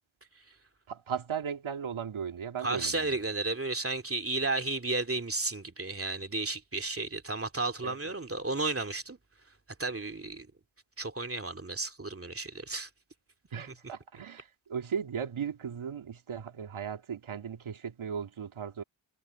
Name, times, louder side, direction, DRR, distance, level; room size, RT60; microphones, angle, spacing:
voice 1, 0.9-3.2 7.8-8.0 13.5-18.8, right 7 dB, 80° right, 2.2 m, -37 dB
voice 2, 2.6-9.2 9.8-10.5 11.0-12.9 13.5-13.7, right 3 dB, 30° right, 2.5 m, -33 dB
cardioid pair, 50°, 47 cm